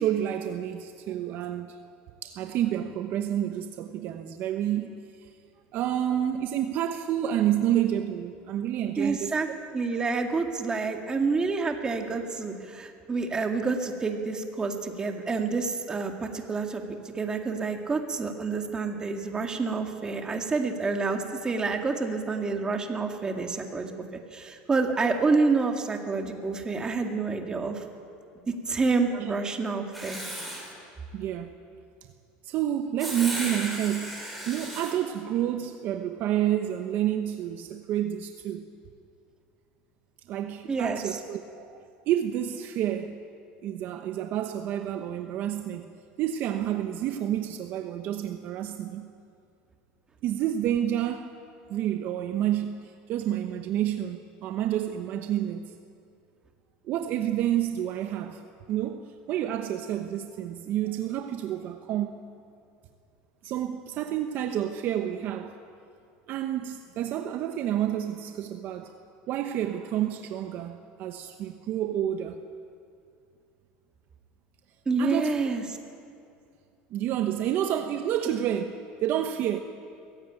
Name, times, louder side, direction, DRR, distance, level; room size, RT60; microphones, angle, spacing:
voice 1, 0.0-1.8 2.2-5.3 5.7-9.3 29.1-29.3 31.1-31.5 32.4-38.7 40.3-43.2 43.6-45.9 46.2-49.1 50.2-51.4 51.7-55.7 56.8-58.4 58.7-62.3 63.4-65.6 66.3-68.9 69.3-72.4 75.0-75.3 76.9-78.7 79.0-79.6, right 11 dB, 50° right, 1.0 m, -29 dB
voice 2, 9.0-9.5 9.7-23.9 24.3-27.8 28.7-30.2 40.7-41.2 74.9-75.6, right 4 dB, 20° right, 2.1 m, -28 dB
Writing, 29.9-30.7 33.0-34.9, right 1 dB, ahead, 5.8 m, -35 dB
22.5 x 16.0 x 9.0 m
supercardioid pair, 135°, 4 cm